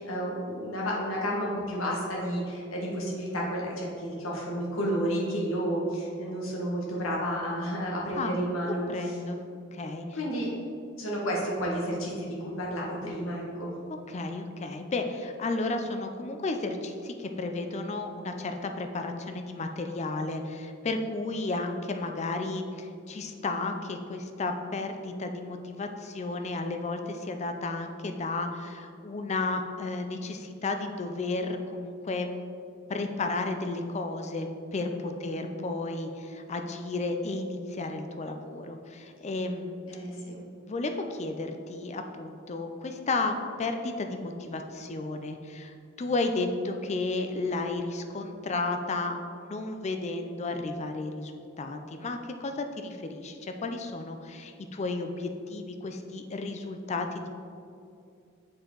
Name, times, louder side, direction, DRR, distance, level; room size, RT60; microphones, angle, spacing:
voice 1, 0.0-9.1 10.1-10.5 11.0-13.7 35.2-35.5 39.9-40.4, equal, 90° left, -3 dB, 1.5 m, -31 dB
voice 2, 8.7-9.4 9.7-10.1 14.1-32.3 32.9-40.0 40.3-49.2 49.5-57.3, left 3 dB, 35° left, 6 dB, 0.4 m, -33 dB
7.7 x 4.5 x 3.8 m, 2.5 s
head